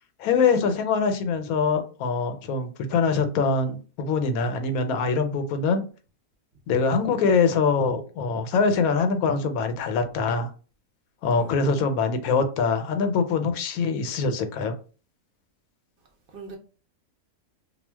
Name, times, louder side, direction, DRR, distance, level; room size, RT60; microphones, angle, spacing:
voice 1, 0.2-5.8 6.7-10.5 11.2-14.7, left 4 dB, 85° left, 1.0 m, -23 dB
voice 2, 11.3-11.8 12.2-12.3 16.3-16.6, right 3 dB, 65° right, 0.5 m, -41 dB
2.3 x 2.2 x 3.3 m
omnidirectional pair, 1.5 m